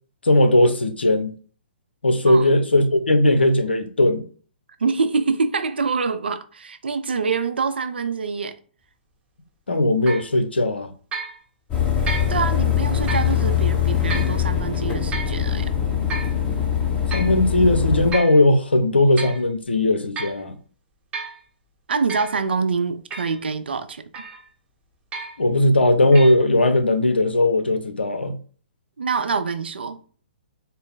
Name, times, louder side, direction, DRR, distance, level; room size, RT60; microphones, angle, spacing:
voice 1, 0.2-1.4 2.0-4.2 9.7-10.9 17.1-20.6 25.4-28.4, left 1 dB, 85° left, 0.7 m, -18 dB
voice 2, 4.8-8.6 12.3-15.7 21.9-24.3 29.0-30.0, right 5 dB, 75° right, 0.5 m, -25 dB
sound 1, 10.1-10.3 11.1-11.4 12.1-12.4 13.1-13.3 14.1-14.3 15.1-15.4 16.1-16.4 17.1-17.4 18.1-18.4 18.9-19.4 20.2-20.4 21.1-21.4 22.1-22.3 23.1-23.4 24.1-24.5 25.1-25.5 26.1-26.3, right 4 dB, 20° right, 0.8 m, -32 dB
sound 2, 11.7-18.1, left 9 dB, 20° left, 1.0 m, -22 dB
4.0 x 2.1 x 3.9 m
figure-of-eight pair, 125°, 6 cm